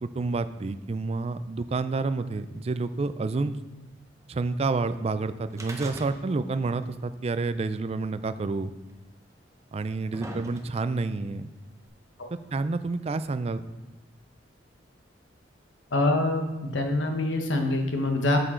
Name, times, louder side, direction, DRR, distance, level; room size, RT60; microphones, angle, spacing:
voice 1, 0.0-3.6 4.3-8.7 9.7-11.5 12.5-13.6, right 3 dB, 35° right, 12 dB, 0.4 m, -29 dB
sound 1, 5.5-6.6 6.8-6.9 7.9-8.0 8.9-9.0 9.7-11.0 11.9-12.0, right 1 dB, 15° right, 0.8 m, -41 dB
voice 2, 15.9-16.5 16.7-18.4, left 2 dB, 85° left, 4 dB, 1.1 m, -25 dB
8.3 x 6.8 x 3.8 m, 1.1 s
head